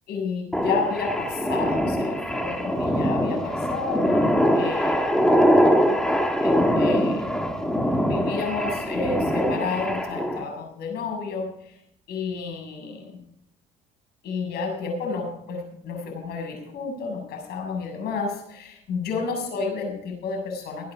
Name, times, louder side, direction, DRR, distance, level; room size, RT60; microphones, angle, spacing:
voice 1, 0.1-5.2 6.4-7.3 8.1-11.8 12.1-13.2 14.2-20.9, left 4 dB, 75° left, 1 dB, 7.1 m, -31 dB
sound 1, 0.5-10.4, equal, 5° left, 1.9 m, -23 dB
21.5 x 8.8 x 5.1 m, 0.76 s
cardioid pair, 110°, 17 cm